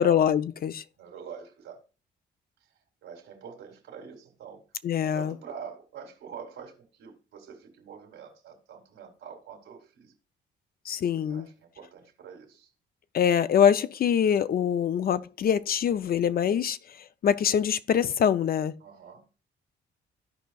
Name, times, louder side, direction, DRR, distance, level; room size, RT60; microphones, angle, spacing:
voice 1, 0.0-0.8 4.8-5.3 10.9-11.5 13.1-16.8 17.2-18.8, left 8 dB, 50° left, 0.5 m, -24 dB
voice 2, 1.0-1.8 3.0-4.6 5.1-10.1 11.3-12.7 18.8-19.3, right 7 dB, 85° right, 2.1 m, -45 dB
14.0 x 5.1 x 2.3 m
cardioid pair, 90°, 20 cm